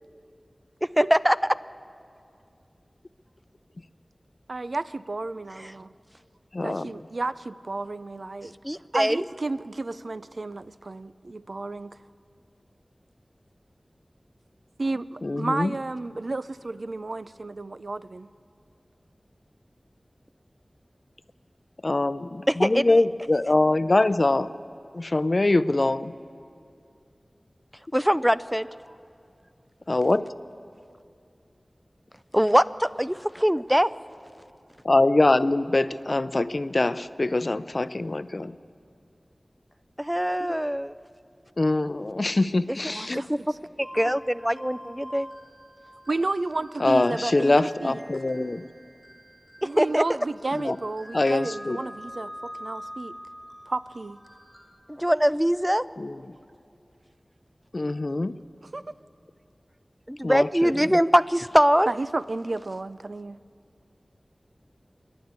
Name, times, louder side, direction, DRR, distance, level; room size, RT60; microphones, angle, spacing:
voice 1, 1.0-1.4 5.6-5.7 8.6-9.2 22.5-23.0 27.9-28.7 32.3-33.9 40.0-41.0 43.3-43.4 43.8-45.3 49.6-50.0 54.9-55.8 60.1-61.9, equal, 5° right, 16 dB, 0.4 m, -22 dB
voice 2, 4.5-5.9 6.6-8.5 8.9-12.0 14.8-18.3 42.9-43.3 46.1-48.0 49.6-53.1 53.7-54.2 58.7-58.8 61.9-63.4, right 2 dB, 70° right, 14 dB, 0.5 m, -32 dB
voice 3, 6.5-7.0 15.2-15.7 21.8-24.5 24.9-26.1 29.9-30.3 34.8-38.6 41.6-43.2 46.8-48.6 50.5-50.8 51.1-51.8 56.0-56.2 57.7-58.4 60.2-60.9, left 2 dB, 55° left, 14 dB, 0.5 m, -23 dB
sound 1, 42.9-43.4 43.8-54.7, equal, 30° right, 5.1 m, -45 dB
25.0 x 11.5 x 9.5 m, 2.4 s
wide cardioid pair, 60°, 0 cm